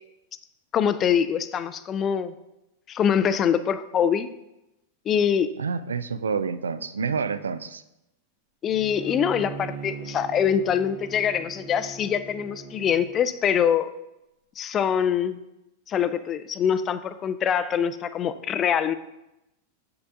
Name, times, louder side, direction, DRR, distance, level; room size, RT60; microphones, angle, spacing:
voice 1, 0.7-2.3 2.9-4.3 5.1-5.5 8.6-13.9 14.6-15.4 15.9-18.9, left 8 dB, 30° left, 13 dB, 0.3 m, -24 dB
voice 2, 5.6-7.8, right 5 dB, 70° right, 14 dB, 0.3 m, -28 dB
Bowed string instrument, 8.7-13.2, right 5 dB, 55° right, 1.2 m, -40 dB
7.8 x 6.4 x 2.6 m, 0.90 s
figure-of-eight pair, 90°, 0 cm